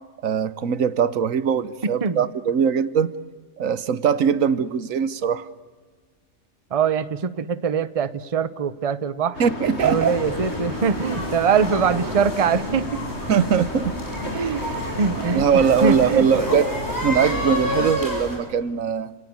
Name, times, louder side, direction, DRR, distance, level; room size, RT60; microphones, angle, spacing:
voice 1, 0.2-3.1 3.6-5.5 9.4-10.1 13.3-14.0 15.4-19.1, right 7 dB, 85° right, 1.4 m, -21 dB
voice 2, 6.7-9.4 9.8-13.0 14.3-14.7 15.0-16.5, right 6 dB, 30° right, 0.8 m, -23 dB
sound 1, 9.3-17.9, left 2 dB, 55° left, 2.7 m, -33 dB
sound 2, 9.8-18.4, equal, 15° left, 8.0 m, -30 dB
30.0 x 18.0 x 9.5 m
omnidirectional pair, 1.4 m